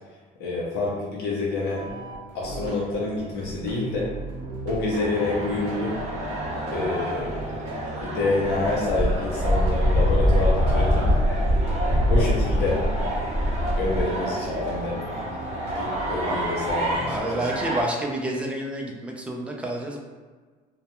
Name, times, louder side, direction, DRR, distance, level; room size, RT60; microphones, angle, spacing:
voice 1, 0.4-1.9 2.3-4.1 4.6-6.0 6.7-7.5 8.0-11.2 12.1-12.8 13.8-15.0 15.7-17.2, left 3 dB, 80° left, -4 dB, 0.6 m, -27 dB
sound 1, 1.7-17.2, right 2 dB, 80° right, 0.7 m, -38 dB
sound 2, 4.9-17.8, right 1 dB, 40° right, 0.7 m, -31 dB
Wind, 8.8-14.1, equal, 35° left, 0.9 m, -22 dB
voice 2, 17.1-20.0, right 1 dB, 5° right, 0 dB, 0.4 m, -29 dB
2.2 x 2.2 x 2.9 m, 1.4 s
cardioid pair, 110°, 17 cm